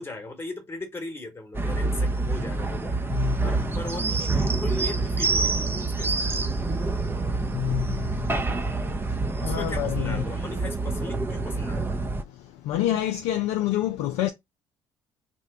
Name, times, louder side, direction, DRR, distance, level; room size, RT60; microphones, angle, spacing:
voice 1, 0.0-3.1 3.4-6.8 9.4-12.0, left 2 dB, 20° left, 1.1 m, -38 dB
sound 1, 1.5-12.2, right 3 dB, 20° right, 0.5 m, -27 dB
voice 2, 3.1-3.5 7.4-8.5 9.4-10.2 12.3-14.3, left 13 dB, 65° left, 0.4 m, -28 dB
2.9 x 2.1 x 3.5 m
hypercardioid pair, 55°, 12 cm